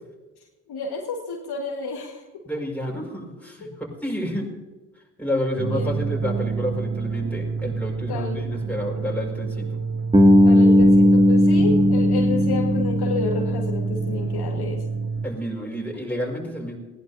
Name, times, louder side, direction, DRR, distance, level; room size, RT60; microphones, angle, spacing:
voice 1, 0.7-2.2 3.6-3.7 5.7-6.0 8.1-8.6 10.4-14.8, left 5 dB, 55° left, 1 dB, 1.8 m, -30 dB
voice 2, 2.5-4.5 5.2-9.7 15.2-16.8, equal, 5° left, -1 dB, 5.4 m, -30 dB
sound 1, 5.6-15.3, right 5 dB, 35° right, 1.2 m, -28 dB
Bass guitar, 10.1-14.1, left 1 dB, 10° right, 2.3 m, -17 dB
20.0 x 15.5 x 2.8 m, 1.1 s
hypercardioid pair, 40°, 45 cm